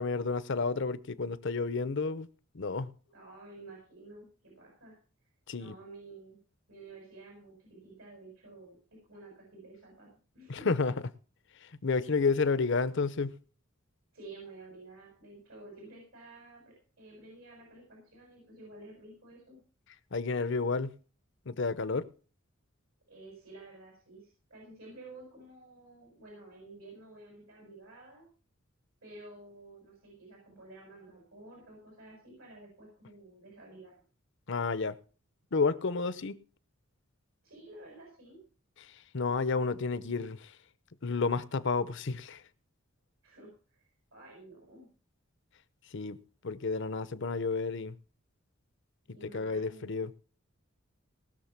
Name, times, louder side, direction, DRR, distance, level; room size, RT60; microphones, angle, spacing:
voice 1, 0.0-2.3 2.5-2.9 5.5-5.7 10.5-10.9 11.6-13.4 20.1-20.9 21.5-22.1 34.5-35.0 35.5-36.4 38.8-40.5 41.0-42.4 45.9-48.0 49.3-50.2, left 4 dB, 60° left, 0.8 m, -31 dB
voice 2, 3.1-4.9 5.6-6.4 6.7-8.8 9.1-10.1 10.3-10.7 14.1-19.6 23.1-28.3 29.0-33.9 37.4-38.4 43.2-43.8 44.1-44.9 49.1-50.0, right 2 dB, 85° right, 6.8 m, -51 dB
19.5 x 6.6 x 5.9 m
head